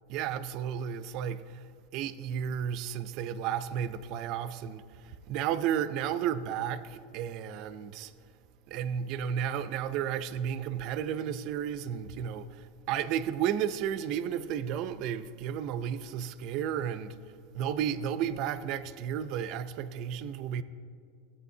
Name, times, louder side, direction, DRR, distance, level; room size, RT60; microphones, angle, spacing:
voice 1, 0.1-8.1 8.7-20.6, right 9 dB, 50° right, 0.4 m, -33 dB
14.0 x 8.4 x 2.7 m
supercardioid pair, 130°, 0 cm